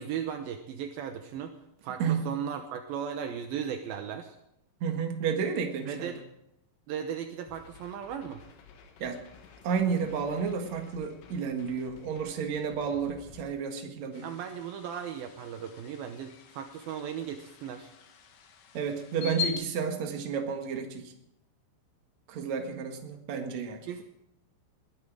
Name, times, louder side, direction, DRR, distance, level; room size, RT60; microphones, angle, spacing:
voice 1, 0.0-1.5 1.8-4.4 5.9-6.2 6.9-8.4 14.2-17.9 23.8-24.0, right 8 dB, 85° right, 6 dB, 2.1 m, -36 dB
voice 2, 4.8-6.1 9.0-9.2 9.6-14.2 18.7-21.1 22.3-23.8, right 6 dB, 55° right, 4 dB, 2.1 m, -31 dB
sound 1, 7.5-13.5, left 6 dB, 85° left, 4.3 m, -54 dB
sound 2, 14.1-19.5, left 8 dB, 65° left, 2.2 m, -41 dB
21.0 x 12.0 x 4.9 m, 0.80 s
omnidirectional pair, 5.6 m